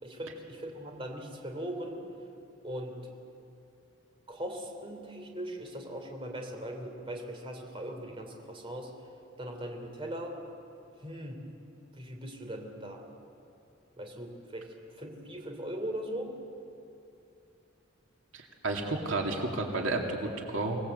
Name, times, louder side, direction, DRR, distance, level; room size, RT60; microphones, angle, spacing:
voice 1, 0.0-2.0 2.6-3.0 4.3-8.9 9.4-10.3 11.0-11.4 11.9-13.0 14.0-14.7 15.0-16.3, right 1 dB, 30° right, 2 dB, 3.2 m, -39 dB
voice 2, 18.3-20.8, right 2 dB, 90° right, 1 dB, 2.5 m, -32 dB
25.5 x 19.0 x 8.1 m, 2.6 s
head